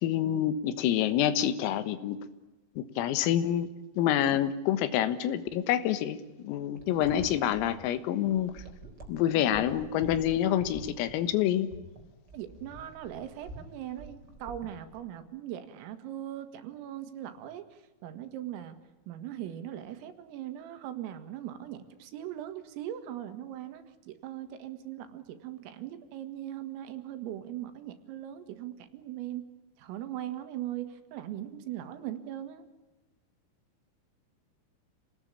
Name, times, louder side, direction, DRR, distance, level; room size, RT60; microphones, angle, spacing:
voice 1, 0.0-2.2 2.8-3.7 4.0-6.2 6.4-8.6 9.1-11.7, left 11 dB, 90° left, 13 dB, 4.1 m, -27 dB
sound 1, 6.8-15.1, right 1 dB, 20° right, 3.6 m, -47 dB
voice 2, 12.3-18.8 19.1-29.5 29.8-32.6, right 12 dB, 85° right, 9 dB, 4.5 m, -40 dB
28.0 x 19.0 x 8.7 m, 1.1 s
omnidirectional pair, 5.9 m